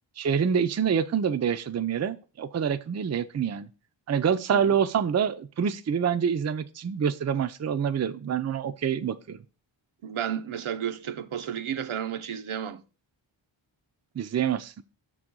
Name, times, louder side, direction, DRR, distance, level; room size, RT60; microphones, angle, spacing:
voice 1, 0.2-3.7 4.1-9.4 14.2-14.8, right 7 dB, 35° right, 0.4 m, -26 dB
voice 2, 10.0-12.8, right 9 dB, 80° right, 0.8 m, -32 dB
6.2 x 3.8 x 6.0 m
wide cardioid pair, 90°, 48 cm